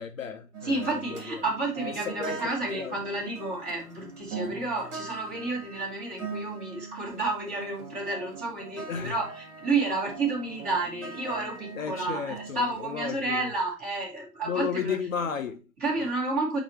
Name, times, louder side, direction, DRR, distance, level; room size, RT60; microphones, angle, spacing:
voice 1, 0.0-1.4 1.9-2.4 2.7-2.9 8.9-9.2 11.7-13.5 14.4-15.6 16.0-16.1, left 7 dB, 55° left, 0.8 m, -33 dB
sound 1, 0.5-13.6, right 4 dB, 45° right, 2.4 m, -41 dB
voice 2, 0.6-15.0 15.8-16.6, right 3 dB, 15° right, 3.0 m, -31 dB
7.8 x 3.0 x 4.4 m
hypercardioid pair, 145°, 49 cm